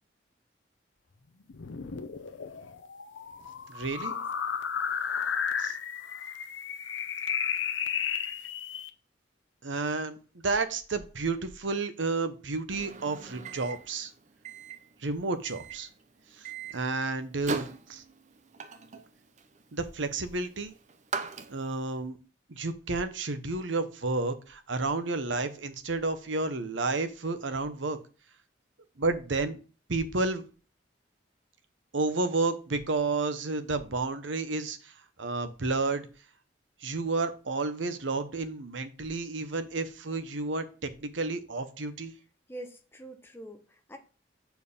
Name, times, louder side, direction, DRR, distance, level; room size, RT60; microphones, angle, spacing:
sound 1, 1.5-8.9, left 7 dB, 85° left, 0.7 m, -33 dB
voice 1, 3.7-4.1 5.6-5.7 9.6-10.2 10.4-14.1 15.0-15.9 16.4-18.0 19.7-20.7 21.5-22.2 22.5-28.0 29.0-29.6 29.9-30.4 31.9-34.9 35.2-36.1 36.8-42.1, right 3 dB, 90° right, 10 dB, 0.9 m, -31 dB
Microwave oven, 12.7-21.9, right 4 dB, 40° right, 0.6 m, -41 dB
voice 2, 42.5-44.0, right 1 dB, 15° left, 5 dB, 1.0 m, -45 dB
6.9 x 4.6 x 5.4 m, 0.35 s
head